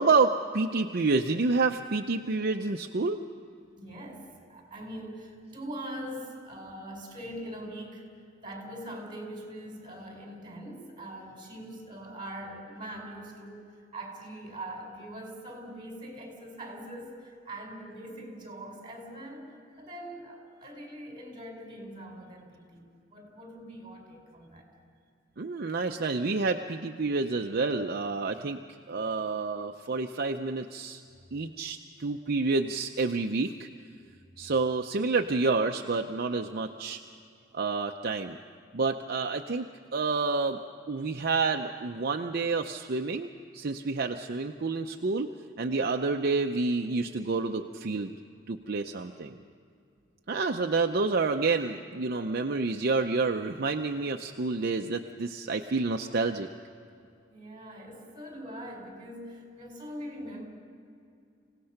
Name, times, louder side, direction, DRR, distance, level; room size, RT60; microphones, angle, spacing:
voice 1, 0.0-3.2 25.4-28.6 28.9-31.0 31.3-33.7 34.4-37.0 37.5-38.4 38.7-39.7 39.9-40.6 40.9-45.3 45.6-48.2 48.5-49.4 50.3-56.5, right 3 dB, 55° right, 4 dB, 0.7 m, -29 dB
voice 2, 3.8-8.1 8.4-24.7 57.3-60.4, right 1 dB, 25° right, 2 dB, 4.6 m, -42 dB
26.5 x 17.5 x 5.8 m, 2.4 s
head